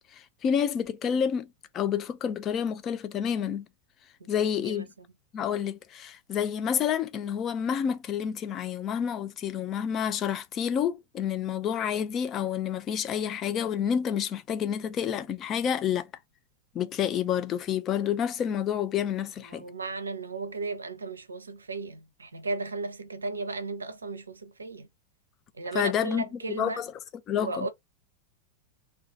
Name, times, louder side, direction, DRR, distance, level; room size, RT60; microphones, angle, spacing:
voice 1, 0.1-1.5 1.7-3.6 4.3-4.9 5.3-16.1 16.7-19.6 25.7-26.9 27.3-27.7, left 8 dB, 30° left, 0.4 m, -29 dB
voice 2, 4.2-5.1 19.4-24.9 25.5-26.9 27.4-27.7, right 3 dB, 75° right, 0.5 m, -35 dB
2.3 x 2.3 x 3.8 m
figure-of-eight pair, 90°, 0 cm